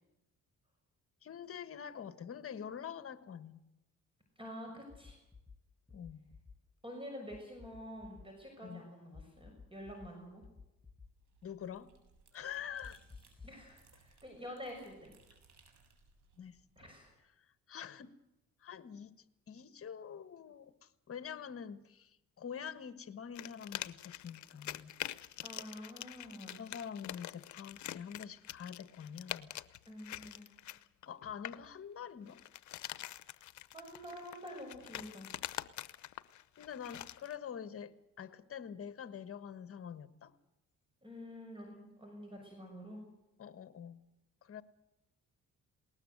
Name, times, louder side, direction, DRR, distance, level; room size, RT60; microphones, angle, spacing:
voice 1, 1.2-3.6 5.9-6.3 8.6-8.8 11.4-11.9 12.3-13.0 16.4-16.9 17.2-18.1 18.6-24.9 26.2-26.3 26.6-29.5 31.1-32.4 36.6-40.3 43.4-44.0 44.4-44.6, left 8 dB, 50° left, 12 dB, 1.4 m, -46 dB
voice 2, 4.4-5.2 6.8-10.4 13.4-15.1 16.8-17.1 25.4-26.6 29.9-30.5 33.7-35.3 41.0-43.0, equal, 15° right, 2 dB, 6.5 m, -48 dB
sound 1, 4.9-5.6 5.9-6.5 7.3-8.2 9.1-10.1 10.4-11.1 12.8-13.6, left 4 dB, 15° left, 1.7 m, -53 dB
sound 2, 11.1-17.1, right 4 dB, 70° right, 7.4 m, -66 dB
sound 3, 23.3-31.7 32.3-37.3, left 13 dB, 70° left, 0.9 m, -45 dB
20.5 x 19.0 x 8.0 m, 0.93 s
cardioid pair, 90°, 30 cm